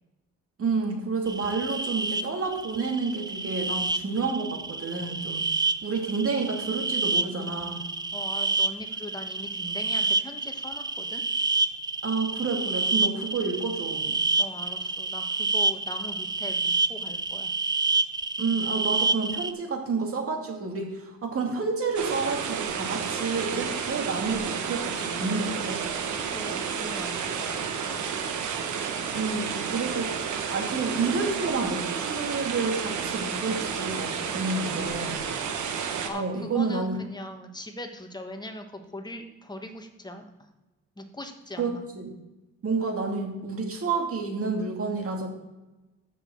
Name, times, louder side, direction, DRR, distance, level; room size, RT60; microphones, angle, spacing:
voice 1, 0.6-5.4 5.8-7.8 12.0-14.2 18.4-25.8 29.1-35.2 36.1-37.0 41.6-42.1 42.6-45.3, right 4 dB, 50° right, 2 dB, 2.3 m, -29 dB
sound 1, 1.3-19.5, right 3 dB, 15° right, 0.5 m, -28 dB
voice 2, 8.1-11.2 14.4-17.5 26.3-28.3 36.0-40.3 41.0-41.8, left 1 dB, 15° left, 5 dB, 1.4 m, -40 dB
sound 2, 21.9-36.1, right 6 dB, 75° right, 1.4 m, -31 dB
6.8 x 6.1 x 7.0 m, 1.1 s
cardioid pair, 90°, 30 cm